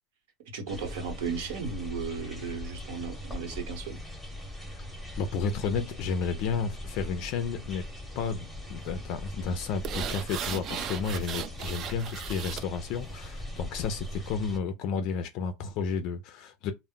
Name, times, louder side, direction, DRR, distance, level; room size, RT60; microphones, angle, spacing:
voice 1, 0.5-4.0, right 5 dB, 75° right, 1.0 m, -35 dB
sound 1, 0.7-14.6, left 1 dB, ahead, 0.8 m, -41 dB
voice 2, 5.2-7.9 8.2-16.7, left 5 dB, 50° left, 0.4 m, -32 dB
sound 2, 9.8-12.7 13.1-13.2, right 9 dB, 35° right, 0.3 m, -36 dB
2.1 x 2.0 x 3.6 m
supercardioid pair, 145°, 0 cm